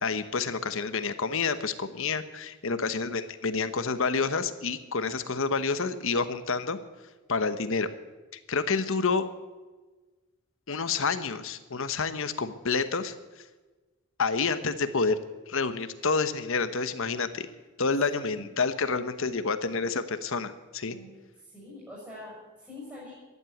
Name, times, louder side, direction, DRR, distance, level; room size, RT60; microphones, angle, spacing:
voice 1, 0.0-6.8 7.3-7.9 8.5-9.3 10.7-13.1 14.2-15.2 15.5-17.5 17.8-21.0, left 4 dB, 65° left, 11 dB, 1.1 m, -28 dB
voice 2, 17.8-18.5 20.9-23.1, left 2 dB, 10° right, -7 dB, 6.4 m, -46 dB
14.5 x 11.0 x 8.5 m, 1.2 s
head